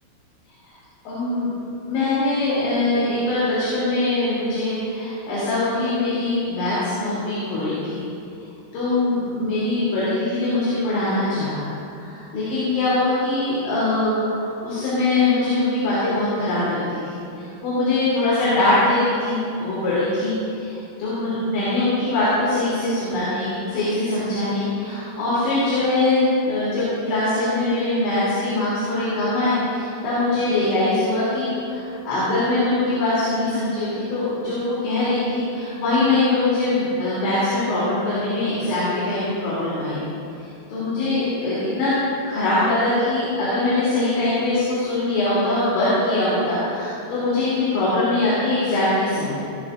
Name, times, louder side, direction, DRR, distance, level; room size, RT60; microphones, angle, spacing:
voice 1, 1.1-1.5 1.9-8.0 8.7-11.7 11.9-40.0 40.4-41.9 42.3-49.5, left 2 dB, 65° left, -10 dB, 5.4 m, -22 dB
17.0 x 14.5 x 2.6 m, 2.7 s
omnidirectional pair, 5.9 m